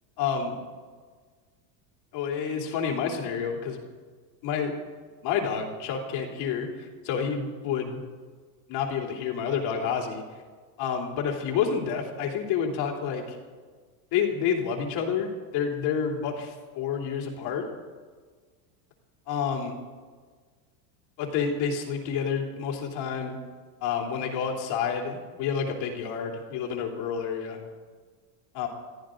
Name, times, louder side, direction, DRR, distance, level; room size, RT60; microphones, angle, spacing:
voice 1, 0.2-0.6 2.1-3.8 4.4-4.7 5.2-8.0 8.7-10.2 10.8-13.4 14.1-17.7 19.3-19.8 21.2-23.4 23.8-27.6 28.5-28.7, left 7 dB, 50° left, 1 dB, 3.2 m, -29 dB
22.0 x 14.0 x 3.8 m, 1.5 s
supercardioid pair, 135°, 49 cm